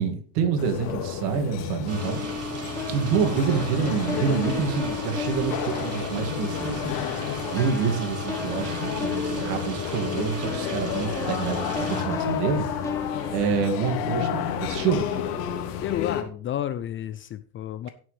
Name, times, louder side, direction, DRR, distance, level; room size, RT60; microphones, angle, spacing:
voice 1, 0.0-2.2 2.9-7.0 7.5-12.7 13.3-15.1, right 6 dB, 70° right, 2.5 m, -27 dB
sound 1, 0.6-16.2, left 9 dB, 75° left, 2.2 m, -31 dB
sound 2, 1.9-7.1 7.4-15.2, left 4 dB, 5° left, 2.9 m, -35 dB
sound 3, 1.9-12.0, right 2 dB, 30° right, 3.3 m, -36 dB
voice 2, 15.8-17.9, left 11 dB, 25° left, 0.4 m, -31 dB
16.5 x 6.3 x 3.4 m
supercardioid pair, 115°, 48 cm